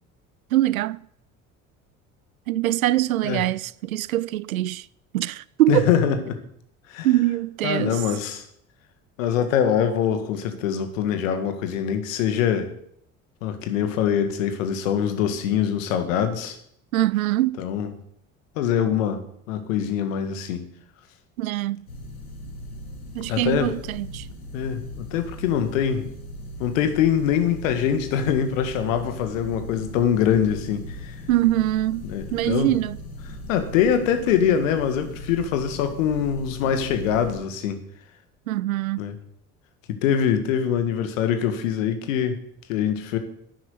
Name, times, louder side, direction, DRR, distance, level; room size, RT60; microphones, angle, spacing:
voice 1, 0.5-1.0 2.5-4.9 5.1-5.9 7.0-8.0 16.9-17.6 21.4-21.8 23.1-24.3 31.3-33.0 38.5-39.0, right 15 dB, 75° right, 0.6 m, -23 dB
voice 2, 5.7-6.4 6.9-7.1 7.6-8.4 9.2-12.7 13.4-16.6 17.6-17.9 18.6-19.2 19.5-20.7 23.3-23.7 24.5-26.1 26.6-31.2 32.1-32.7 33.5-37.8 39.0-39.2 39.9-42.4 42.7-43.2, left 8 dB, 70° left, 1.9 m, -23 dB
sound 1, 21.9-37.4, left 1 dB, 85° left, 2.0 m, -38 dB
11.0 x 9.3 x 8.0 m
figure-of-eight pair, 55°, 42 cm